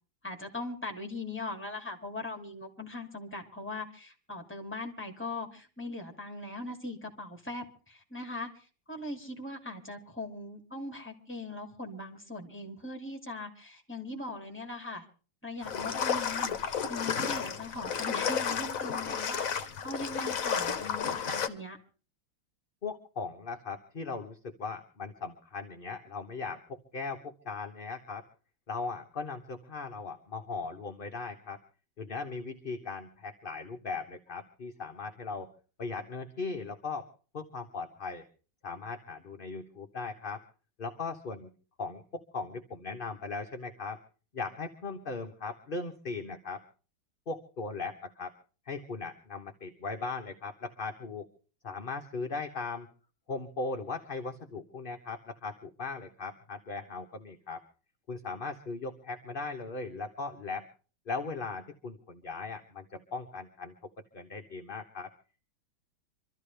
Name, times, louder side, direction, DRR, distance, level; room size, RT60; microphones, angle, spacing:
voice 1, 0.2-15.0 15.4-21.8, left 2 dB, 5° left, 3 dB, 2.5 m, -40 dB
sound 1, 15.6-21.5, left 7 dB, 50° left, 1.3 m, -32 dB
voice 2, 22.8-28.2 28.7-31.6 32.0-35.5 35.8-37.1 37.3-38.2 38.6-40.4 40.8-41.5 41.8-44.0 44.3-46.6 47.3-48.3 48.7-51.3 51.6-52.9 53.3-57.6 58.1-60.7 61.1-63.7 64.1-65.1, left 4 dB, 35° left, 5 dB, 1.0 m, -38 dB
25.5 x 13.5 x 3.4 m, 0.38 s
omnidirectional pair, 2.0 m